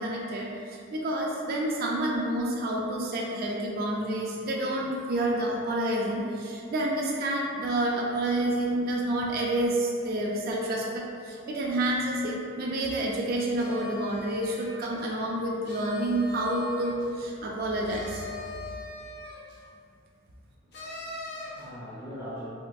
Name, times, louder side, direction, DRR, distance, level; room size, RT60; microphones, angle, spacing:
voice 1, 0.0-18.3, right 1 dB, 45° right, -2 dB, 0.3 m, -29 dB
sound 1, 13.5-15.1 15.6-17.1 17.9-19.6 20.7-21.7, left 3 dB, 50° left, 0.5 m, -41 dB
voice 2, 20.6-22.5, equal, 5° right, -13 dB, 0.6 m, -42 dB
3.6 x 2.4 x 2.2 m, 2.4 s
head